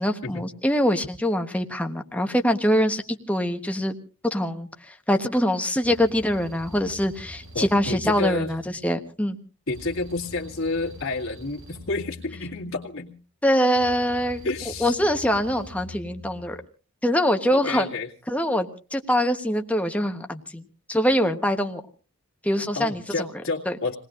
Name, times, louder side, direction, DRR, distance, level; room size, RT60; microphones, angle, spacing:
voice 1, 0.0-4.0 4.2-9.4 13.4-14.5 14.8-16.6 17.0-17.9 18.3-20.6 20.9-21.8 22.4-23.3 23.7-23.8, equal, 5° left, 5 dB, 1.1 m, -24 dB
sound 1, 5.8-8.9 9.7-13.0 13.7-16.6, left 1 dB, 80° right, 6.0 m, -44 dB
voice 2, 7.5-8.5 9.7-13.1 14.4-15.0 17.5-18.1 22.8-24.0, left 3 dB, 70° left, -3 dB, 2.2 m, -30 dB
28.0 x 19.0 x 2.5 m, 0.36 s
head